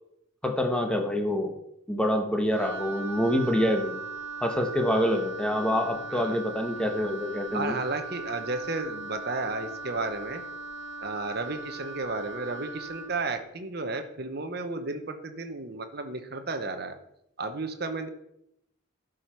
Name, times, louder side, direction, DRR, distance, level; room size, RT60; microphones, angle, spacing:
voice 1, 0.4-1.5 1.9-3.9 4.4-7.8, equal, 5° left, 3 dB, 1.2 m, -26 dB
Wind instrument woodwind instrument, 2.5-13.2, right 3 dB, 70° right, 1.7 m, -39 dB
voice 2, 7.5-10.4 11.0-16.9 17.4-18.1, right 3 dB, 50° right, 7 dB, 0.9 m, -33 dB
12.0 x 5.0 x 5.9 m, 0.78 s
head